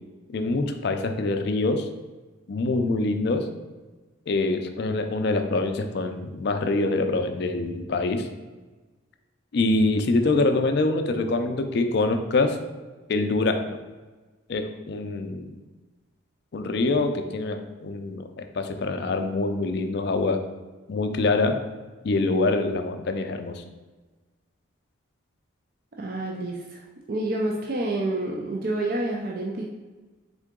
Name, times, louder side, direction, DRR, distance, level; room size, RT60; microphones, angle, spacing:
voice 1, 0.3-1.9 2.5-3.5 4.3-8.3 9.5-12.6 13.1-13.6 14.5-15.5 16.5-20.5 20.9-21.6 22.0-23.6, left 2 dB, 50° left, 7 dB, 0.4 m, -25 dB
voice 2, 25.9-29.6, right 2 dB, 45° right, -1 dB, 0.4 m, -28 dB
3.7 x 3.6 x 3.6 m, 1.3 s
head